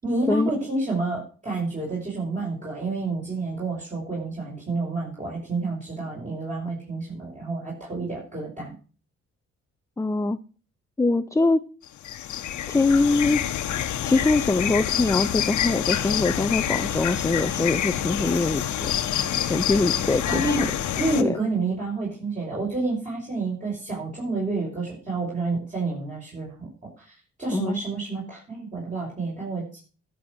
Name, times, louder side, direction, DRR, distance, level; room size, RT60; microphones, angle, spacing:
voice 1, 0.0-8.7 20.3-20.7 21.0-26.7 27.0-29.8, right 3 dB, 25° right, -6 dB, 6.2 m, -29 dB
voice 2, 10.0-10.4 11.0-11.6 12.7-13.4 13.7-18.9 19.5-20.6 21.2-21.4 27.5-27.8, left 3 dB, 10° left, 12 dB, 0.5 m, -23 dB
sound 1, 11.9-21.2, left 10 dB, 75° left, 1.2 m, -27 dB
13.0 x 7.0 x 6.3 m, 0.38 s
cardioid pair, 90°, 30 cm